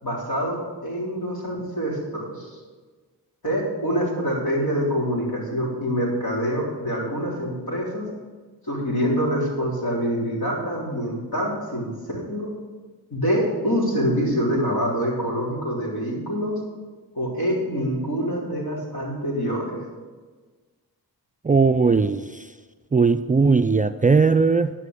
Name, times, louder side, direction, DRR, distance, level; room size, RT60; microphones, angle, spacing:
voice 1, 0.0-2.6 3.4-8.1 8.6-12.5 13.1-16.6 17.1-19.8, equal, 65° left, -4 dB, 3.8 m, -25 dB
voice 2, 21.4-22.5 22.9-24.7, right 4 dB, 20° right, 9 dB, 0.3 m, -18 dB
11.5 x 5.7 x 6.7 m, 1.4 s
cardioid pair, 45°, 39 cm